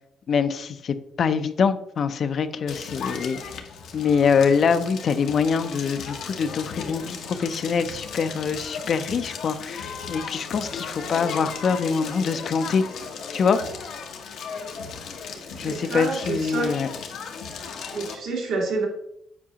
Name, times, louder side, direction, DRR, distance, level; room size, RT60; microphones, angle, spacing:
voice 1, 0.3-3.4 3.9-12.8 13.3-13.6 15.5-16.9, left 6 dB, 55° left, 10 dB, 0.5 m, -24 dB
Crackle, 2.7-18.1, left 5 dB, 80° left, 0.9 m, -36 dB
voice 2, 15.6-16.8 17.9-18.9, right 3 dB, 80° right, -2 dB, 1.9 m, -28 dB
7.3 x 4.6 x 2.9 m, 0.75 s
cardioid pair, 90°, 0 cm